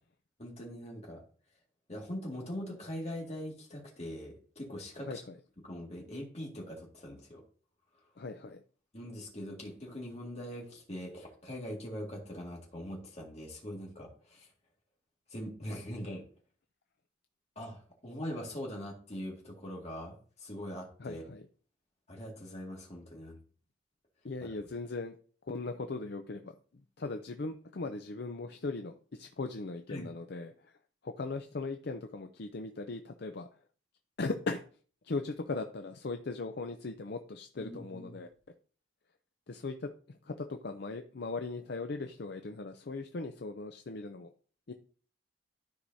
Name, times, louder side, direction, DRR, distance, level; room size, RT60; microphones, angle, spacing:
voice 1, 0.4-1.2 1.9-5.2 5.6-7.4 8.9-14.5 15.3-16.2 17.6-21.2 22.1-23.4 29.9-30.1 37.6-38.1, equal, 35° left, -1 dB, 2.0 m, -42 dB
voice 2, 5.0-5.4 8.2-8.6 21.0-21.4 24.2-25.2 25.5-26.5 27.0-30.7 31.0-33.5 34.2-34.6 35.0-38.3 39.5-44.3 44.7-44.8, left 3 dB, 55° left, 6 dB, 0.5 m, -38 dB
13.0 x 4.8 x 2.7 m, 0.43 s
head